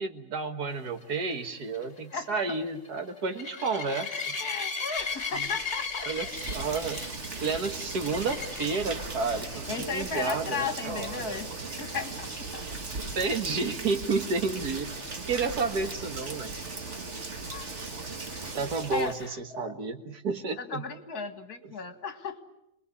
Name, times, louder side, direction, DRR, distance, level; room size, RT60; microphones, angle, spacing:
voice 1, 0.0-4.4 5.3-5.5 6.0-7.0 7.4-11.4 13.2-16.6 18.5-20.8, right 4 dB, 80° right, 7 dB, 2.2 m, -31 dB
sound 1, 1.0-8.9 9.5-9.8 10.1-10.2 10.6-10.7 14.3-14.4, left 4 dB, 50° left, 3.4 m, -36 dB
voice 2, 4.3-6.3 9.3-12.6 17.5-17.7 18.9-19.7 20.6-22.4, left 5 dB, 70° left, 8 dB, 2.4 m, -36 dB
sound 2, 5.0-18.5, equal, 15° left, 7.7 m, -48 dB
Rain, 6.1-19.3, right 3 dB, 45° right, 2.0 m, -38 dB
28.0 x 21.0 x 8.4 m, 0.82 s
omnidirectional pair, 1.7 m